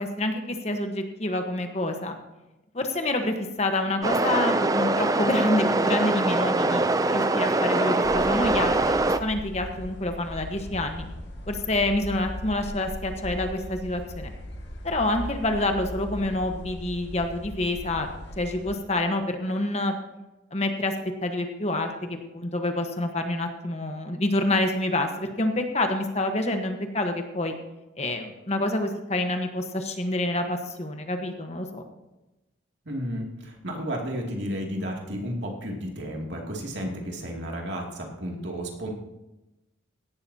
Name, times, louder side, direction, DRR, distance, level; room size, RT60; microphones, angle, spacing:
voice 1, 0.0-2.1 2.7-11.1 11.5-14.3 14.8-18.1 18.4-19.9 20.5-20.9 21.2-27.5 28.0-31.8, left 1 dB, 35° left, 5 dB, 1.2 m, -27 dB
sound 1, 4.0-9.2, right 2 dB, 20° right, 0.5 m, -23 dB
sound 2, 8.0-18.8, equal, 65° left, 1.9 m, -38 dB
voice 2, 32.8-38.9, equal, 70° right, 0 dB, 2.6 m, -32 dB
17.0 x 12.0 x 2.9 m, 1.0 s
head